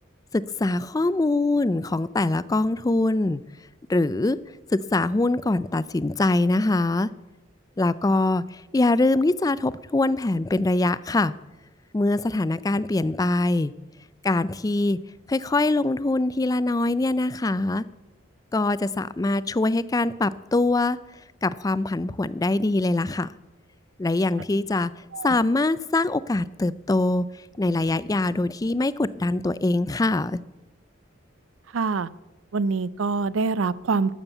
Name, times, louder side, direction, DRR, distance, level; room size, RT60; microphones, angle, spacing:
voice 1, 0.3-3.4 3.9-4.4 4.9-7.1 7.8-11.3 11.9-13.7 14.2-15.0 15.3-17.8 18.5-21.0 21.4-23.3 24.0-24.9 25.2-27.3 27.6-30.4, left 2 dB, 20° left, 0.3 m, -23 dB
voice 2, 31.7-32.1 32.5-34.1, right 4 dB, 80° right, 0.5 m, -25 dB
12.5 x 7.2 x 8.0 m
head